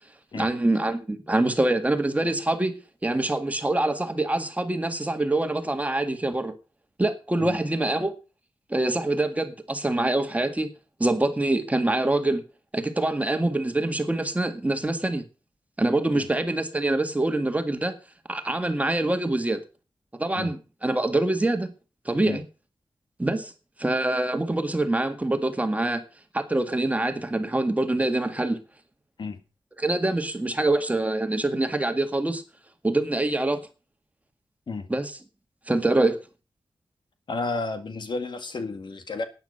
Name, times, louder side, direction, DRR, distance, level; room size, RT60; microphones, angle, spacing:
voice 1, 0.3-6.5 7.0-8.1 8.7-10.7 11.0-12.4 12.7-15.2 15.8-17.9 18.3-19.6 20.2-21.7 22.1-22.4 23.2-23.5 23.8-26.0 26.3-28.6 29.8-32.4 32.8-33.6 34.9-35.2 35.7-36.2, right 2 dB, 15° right, 1.8 m, -25 dB
voice 2, 37.3-39.2, left 3 dB, 65° left, 1.9 m, -32 dB
12.0 x 9.5 x 5.6 m
wide cardioid pair, 95°, 9 cm